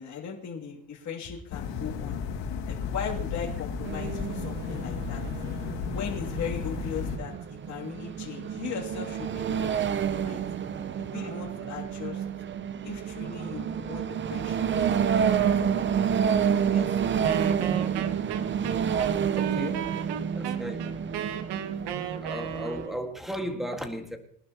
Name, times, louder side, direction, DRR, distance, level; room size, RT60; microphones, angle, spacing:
voice 1, 0.0-2.2 2.7-5.2 5.9-10.4 11.0-12.2 12.8-15.3 15.6-15.9 16.6-17.5, left 6 dB, 40° left, 2.8 m, -38 dB
sound 1, 1.5-7.2, left 6 dB, 85° left, 2.5 m, -34 dB
sound 2, 3.8-22.9, right 8 dB, 25° right, 0.6 m, -29 dB
Wind instrument woodwind instrument, 17.2-23.1, right 9 dB, 70° right, 1.3 m, -35 dB
voice 2, 19.4-19.9 20.3-20.9 22.2-24.2, equal, ahead, 1.8 m, -35 dB
23.0 x 12.0 x 3.0 m
cardioid pair, 150°, 43 cm